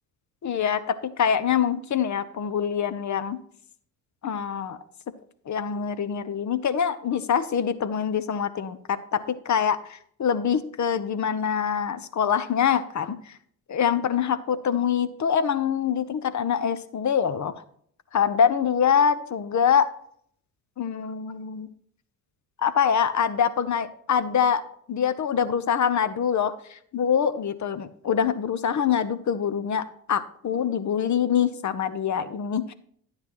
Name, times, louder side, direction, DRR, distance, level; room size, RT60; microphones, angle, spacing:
voice 1, 0.4-3.4 4.2-4.8 5.5-13.4 13.7-17.6 18.1-19.9 20.8-21.7 22.6-24.6 24.9-32.7, left 7 dB, 35° left, 12 dB, 0.8 m, -25 dB
10.5 x 9.6 x 3.0 m, 0.64 s
hypercardioid pair, 55°, 50 cm